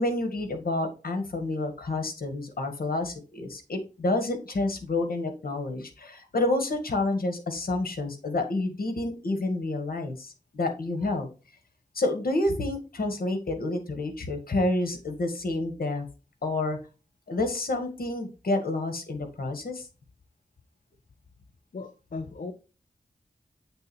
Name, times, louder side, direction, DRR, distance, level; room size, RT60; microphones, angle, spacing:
voice 1, 0.0-11.3 11.9-16.1 16.4-16.8 17.3-19.9, left 2 dB, 80° left, 6 dB, 1.9 m, -29 dB
voice 2, 21.7-22.5, left 3 dB, 60° left, 7 dB, 1.0 m, -37 dB
8.2 x 3.9 x 4.4 m, 0.32 s
cardioid pair, 55°, 15 cm